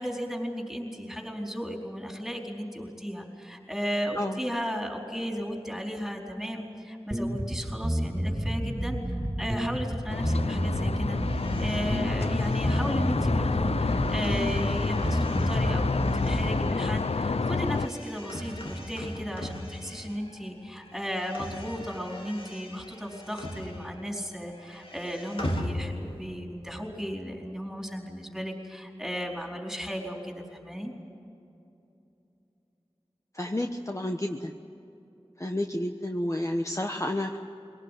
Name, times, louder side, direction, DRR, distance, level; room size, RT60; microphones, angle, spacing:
voice 1, 0.0-9.0 9.4-11.2 11.6-30.9, equal, ahead, 0 dB, 4.5 m, -35 dB
sound 1, 7.1-16.7, right 1 dB, 25° right, 2.6 m, -30 dB
sound 2, 10.1-17.9, left 4 dB, 80° left, 0.6 m, -29 dB
sound 3, 11.2-20.5 20.7-24.2 24.5-26.4, left 1 dB, 60° left, 2.3 m, -40 dB
voice 2, 33.3-34.5 35.4-37.4, left 1 dB, 30° left, 3 dB, 1.1 m, -30 dB
23.0 x 18.0 x 9.4 m, 2.8 s
wide cardioid pair, 45°, 10 cm